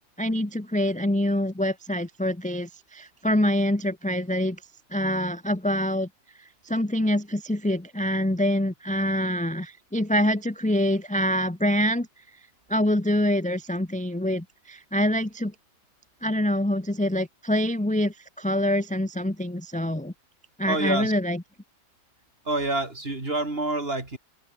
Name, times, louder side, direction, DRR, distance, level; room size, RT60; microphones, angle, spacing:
voice 1, 0.2-4.6 4.9-6.1 6.4-12.1 12.7-15.5 16.2-20.1 20.6-21.4, left 1 dB, 5° left, 0.9 m, -25 dB
voice 2, 20.7-21.1 22.5-24.2, right 2 dB, 30° right, 3.9 m, -27 dB
open air
omnidirectional pair, 2.1 m